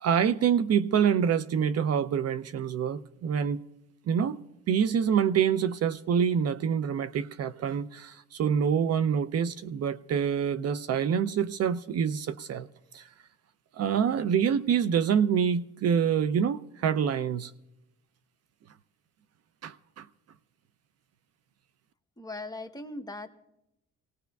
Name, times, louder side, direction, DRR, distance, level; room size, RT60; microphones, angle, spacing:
voice 1, 0.0-3.6 4.1-4.4 4.7-12.7 12.9-13.1 13.7-17.5 19.6-20.1, right 7 dB, 55° right, 0.5 m, -26 dB
voice 2, 22.2-23.3, left 2 dB, 10° left, 1.0 m, -39 dB
24.0 x 18.0 x 2.3 m
cardioid pair, 90°, 30 cm